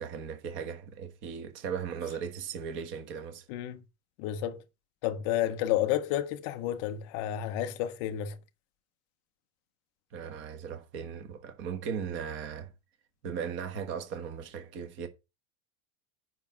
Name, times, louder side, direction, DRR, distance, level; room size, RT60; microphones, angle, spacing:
voice 1, 0.0-3.4 10.1-12.7 13.2-15.1, right 7 dB, 30° right, 1.2 m, -37 dB
voice 2, 3.5-3.8 4.2-4.6 5.0-8.4, left 11 dB, 20° left, 0.4 m, -31 dB
9.0 x 5.9 x 5.3 m
supercardioid pair, 175°, 42 cm